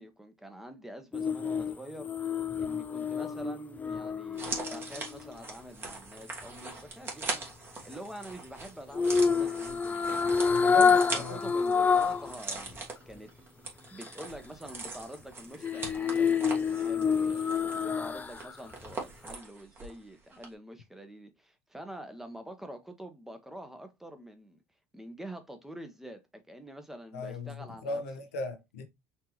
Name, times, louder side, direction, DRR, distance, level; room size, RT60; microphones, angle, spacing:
voice 1, 0.0-2.1 2.6-7.5 7.8-13.3 13.9-24.6 24.9-28.0, right 1 dB, 5° right, 1.0 m, -46 dB
sound 1, 1.1-5.4 8.9-12.3 12.7-12.8 15.6-18.5 18.9-19.0, left 5 dB, 20° left, 0.4 m, -27 dB
sound 2, 4.3-20.0 20.3-20.5, right 3 dB, 30° right, 1.6 m, -41 dB
voice 2, 10.4-10.8 11.1-11.4 27.1-28.8, left 2 dB, 85° left, 0.9 m, -37 dB
4.4 x 2.8 x 3.0 m
hypercardioid pair, 75°, 7 cm